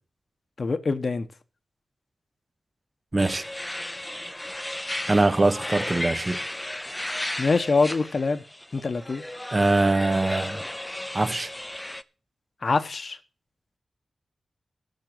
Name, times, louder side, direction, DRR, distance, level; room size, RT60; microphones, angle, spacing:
voice 1, 0.6-1.3 7.4-8.4 8.7-9.2 12.6-13.2, left 4 dB, 55° left, 1.1 m, -24 dB
voice 2, 3.1-3.4 5.1-6.4 9.5-10.6 11.1-11.5, right 2 dB, 30° right, 1.0 m, -22 dB
sound 1, 3.2-12.0, left 1 dB, 15° left, 0.6 m, -34 dB
13.0 x 6.7 x 7.8 m
wide cardioid pair, 80°, 0 cm